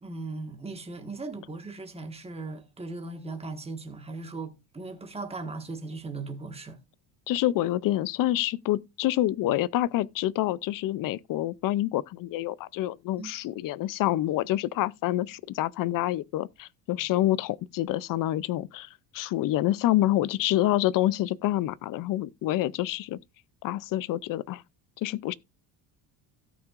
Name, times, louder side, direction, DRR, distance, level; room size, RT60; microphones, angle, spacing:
voice 1, 0.0-6.8 13.2-13.3, right 3 dB, 15° right, 1.5 m, -38 dB
voice 2, 7.3-23.2 23.6-24.6 25.0-25.3, left 14 dB, 50° left, 0.5 m, -27 dB
17.0 x 5.9 x 2.4 m
cardioid pair, 145°, 43 cm